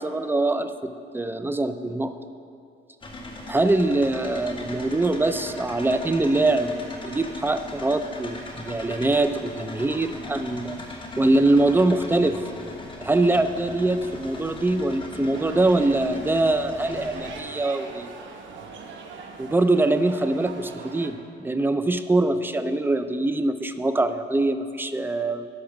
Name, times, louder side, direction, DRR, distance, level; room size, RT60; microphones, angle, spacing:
voice 1, 0.0-2.1 3.5-6.8 7.0-10.8 11.2-12.4 13.0-18.1 19.4-25.5, right 2 dB, 10° right, 10 dB, 0.5 m, -23 dB
sound 1, 3.0-17.4, left 1 dB, 25° left, 1.3 m, -39 dB
sound 2, 15.3-21.1, right 4 dB, 75° right, 1.0 m, -41 dB
12.0 x 4.9 x 5.9 m, 2.4 s
cardioid pair, 90°, 20 cm